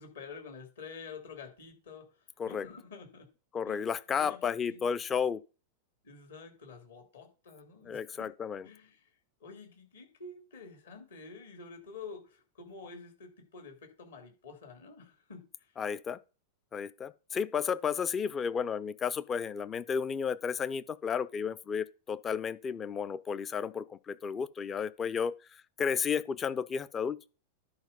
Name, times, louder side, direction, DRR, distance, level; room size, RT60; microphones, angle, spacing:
voice 1, 0.0-3.3 3.7-3.9 4.2-4.9 6.0-8.3 8.6-9.1 9.4-15.8, left 4 dB, 65° left, 2.9 m, -49 dB
voice 2, 3.5-5.4 7.9-8.6 15.8-16.2 16.7-25.3 25.8-27.2, left 6 dB, 25° left, 0.5 m, -32 dB
10.5 x 4.5 x 5.4 m
figure-of-eight pair, 90°, 0 cm